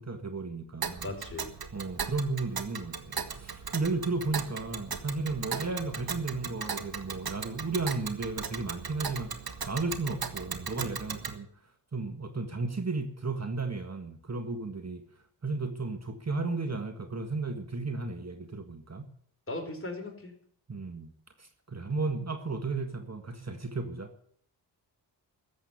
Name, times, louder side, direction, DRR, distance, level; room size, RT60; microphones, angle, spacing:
voice 1, 0.0-1.1 1.7-9.3 9.7-11.5 11.9-15.0 15.4-19.1 20.7-21.1 21.4-24.1, right 3 dB, 35° right, 7 dB, 1.7 m, -34 dB
Tick, 0.8-11.4, right 6 dB, 50° right, 1.6 m, -38 dB
voice 2, 1.0-1.5 19.5-20.3, left 2 dB, 25° left, 2 dB, 5.1 m, -37 dB
13.5 x 8.0 x 9.4 m, 0.62 s
cardioid pair, 55°, 47 cm